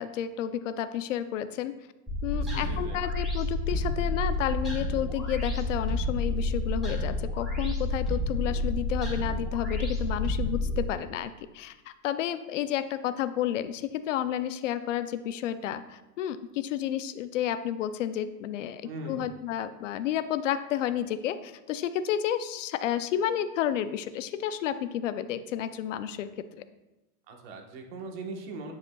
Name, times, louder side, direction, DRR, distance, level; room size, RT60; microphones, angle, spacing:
voice 1, 0.0-1.8 2.2-18.8 19.1-26.3, left 10 dB, 55° left, 12 dB, 0.5 m, -31 dB
sound 1, 2.1-10.8, left 2 dB, ahead, 1.7 m, -30 dB
voice 2, 2.3-3.0 18.8-19.3 27.3-28.7, right 2 dB, 40° right, 3 dB, 1.2 m, -40 dB
9.6 x 8.0 x 2.3 m, 0.98 s
supercardioid pair, 170°, 46 cm